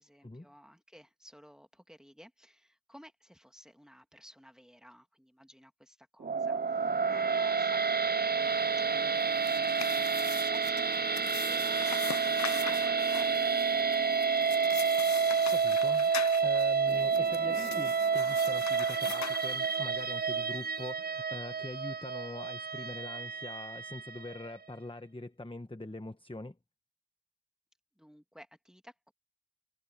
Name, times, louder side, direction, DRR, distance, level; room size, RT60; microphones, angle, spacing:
voice 1, 0.0-14.4 28.0-29.1, equal, ahead, 2.6 m, -56 dB
sound 1, 6.2-24.5, right 5 dB, 30° right, 0.4 m, -29 dB
sound 2, 9.1-20.0, left 8 dB, 55° left, 0.4 m, -43 dB
voice 2, 15.5-16.1 16.4-26.6, left 2 dB, 15° left, 1.1 m, -43 dB
wide cardioid pair, 45°, 35 cm